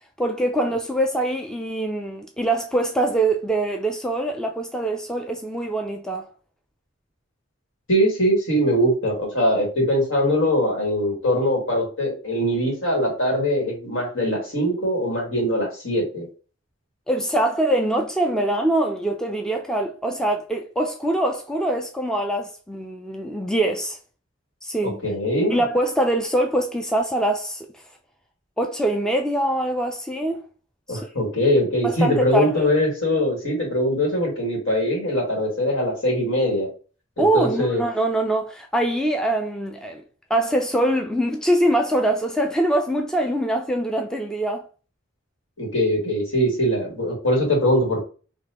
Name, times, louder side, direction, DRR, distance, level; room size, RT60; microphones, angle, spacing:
voice 1, 0.2-6.3 17.1-24.0 24.6-25.0 25.5-27.8 28.6-30.4 30.9-31.1 31.8-32.7 37.2-40.0 40.3-44.6, right 1 dB, 5° left, 0.4 m, -23 dB
voice 2, 7.9-16.3 25.0-25.6 30.9-36.7 37.2-37.8 45.6-48.0, equal, 70° left, 2.1 m, -22 dB
4.1 x 2.9 x 2.9 m
head